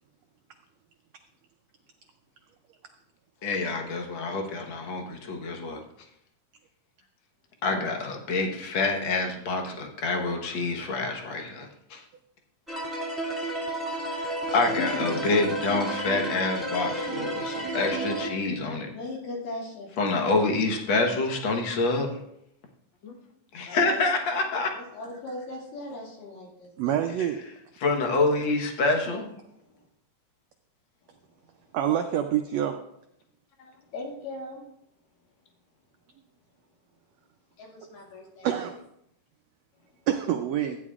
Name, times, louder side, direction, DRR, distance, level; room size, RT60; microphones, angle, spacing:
voice 1, 3.4-5.8 7.6-12.0 14.5-18.9 20.0-22.2 23.0-23.1 23.5-24.7 27.8-29.2 33.6-33.7, left 3 dB, 60° left, 3 dB, 1.3 m, -27 dB
sound 1, 12.7-18.3, right 1 dB, ahead, 1.5 m, -31 dB
voice 2, 14.9-15.3 18.9-20.2 23.7-24.1 24.7-27.0 29.1-29.9 31.0-31.1 33.8-34.6 37.6-38.5, left 2 dB, 85° left, -2 dB, 3.9 m, -39 dB
voice 3, 26.8-27.4 31.7-32.8 38.4-38.7 40.1-40.8, right 10 dB, 90° right, 5 dB, 1.5 m, -26 dB
14.5 x 9.7 x 2.4 m, 0.76 s
omnidirectional pair, 3.8 m